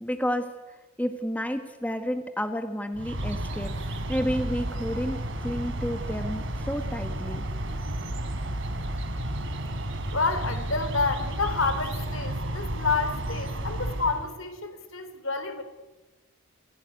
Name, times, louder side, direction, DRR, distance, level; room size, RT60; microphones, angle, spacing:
voice 1, 0.0-7.4, equal, 5° left, 7 dB, 1.3 m, -31 dB
sound 1, 2.9-14.3, right 1 dB, 55° right, 3.3 m, -32 dB
voice 2, 10.1-15.6, left 4 dB, 60° left, 10 dB, 3.4 m, -29 dB
29.0 x 16.5 x 9.5 m, 1.2 s
head